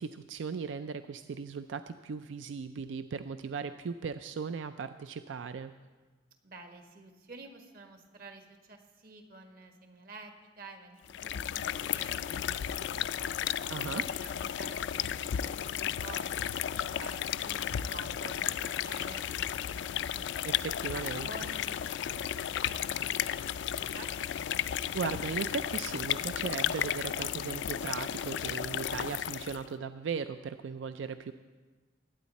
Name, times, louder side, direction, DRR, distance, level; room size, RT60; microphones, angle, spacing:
voice 1, 0.0-5.7 13.7-14.0 20.4-21.3 24.9-31.3, right 5 dB, 80° right, 10 dB, 0.4 m, -37 dB
voice 2, 6.4-13.3 13.9-16.3 16.6-20.3 20.9-24.3, right 3 dB, 50° right, 4 dB, 1.4 m, -50 dB
sound 1, 11.0-29.7, left 10 dB, 65° left, 0.3 m, -34 dB
20.5 x 9.1 x 4.1 m, 1.3 s
head